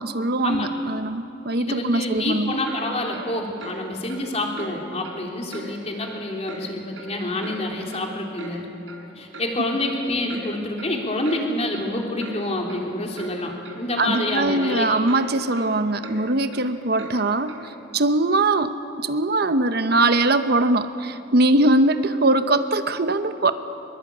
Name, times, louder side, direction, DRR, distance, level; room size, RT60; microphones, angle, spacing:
voice 1, 0.0-2.6 14.0-18.7 19.0-23.5, right 2 dB, 55° right, 10 dB, 0.9 m, -21 dB
voice 2, 1.6-8.7 9.2-15.0, left 1 dB, 35° left, 1 dB, 3.4 m, -27 dB
Clock, 2.6-2.8 3.1-3.3 3.6-3.8 4.1-4.2 4.5-4.7 5.0-5.2 5.5-5.6 6.0-6.1 6.5-6.6 6.9-7.6 7.9-8.0 8.4-8.5 8.9-9.0 9.3-9.5 9.8-10.0 10.3-10.4 10.8-10.9 11.2-11.4 11.7-11.8 12.2-12.3 12.7-12.8 13.2-13.3 13.6-13.8 14.1-14.3 14.6-14.7 15.1-15.2 15.5-15.7 16.0-16.2 16.5-16.6 17.0-17.1 17.5-17.6, right 3 dB, 85° right, 4.2 m, -39 dB
23.0 x 22.5 x 8.5 m, 2.7 s
head